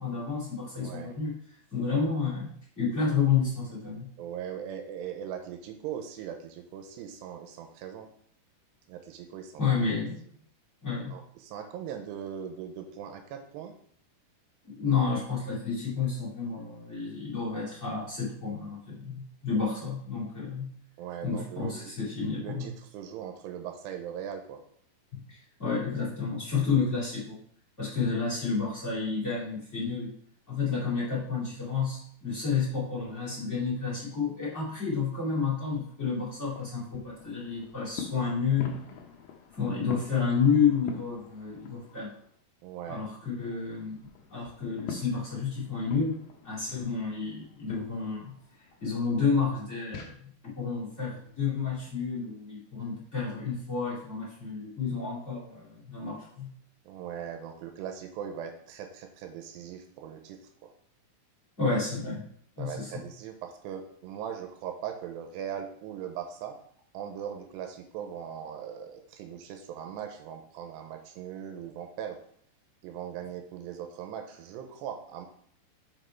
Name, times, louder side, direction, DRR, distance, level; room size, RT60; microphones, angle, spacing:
voice 1, 0.0-1.4 1.7-4.1 9.6-10.2 10.8-11.2 14.6-20.7 21.2-22.7 25.1-27.4 27.8-30.1 30.5-38.8 39.5-42.1 42.9-43.9 44.3-46.2 46.4-48.3 48.8-56.5 61.6-62.3 62.6-63.0, left 5 dB, 25° left, -7 dB, 2.0 m, -30 dB
voice 2, 0.8-1.1 4.2-8.1 8.9-9.6 11.1-13.7 21.0-21.9 22.4-24.6 42.6-43.0 56.9-60.7 62.6-66.6 66.9-72.2 72.8-75.3, right 9 dB, 85° right, 5 dB, 2.8 m, -40 dB
sound 1, 35.5-42.3 42.7-50.1, left 7 dB, 75° left, 2.2 m, -46 dB
6.0 x 5.1 x 4.5 m, 0.63 s
omnidirectional pair, 4.8 m